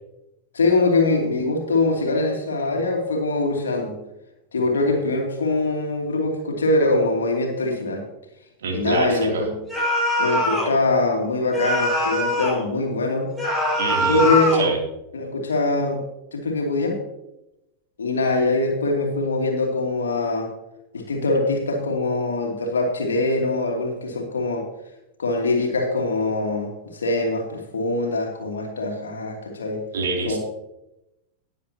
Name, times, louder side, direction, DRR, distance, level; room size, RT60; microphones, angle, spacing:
voice 1, 0.5-4.0 4.5-8.0 8.7-9.6 10.2-13.3 14.1-14.7 15.1-16.0 16.3-17.0 18.0-20.5 20.9-24.7 25.2-29.8 30.2-30.4, left 2 dB, 70° left, 1 dB, 2.7 m, -23 dB
voice 2, 8.6-9.5 13.8-14.3 14.6-14.8 29.9-30.4, right 3 dB, 60° right, 0 dB, 2.9 m, -25 dB
sound 1, 9.7-10.8 11.5-12.6 13.4-14.7, left 1 dB, ahead, 5.1 m, -22 dB
19.5 x 7.9 x 2.9 m, 0.91 s
figure-of-eight pair, 90°, 0 cm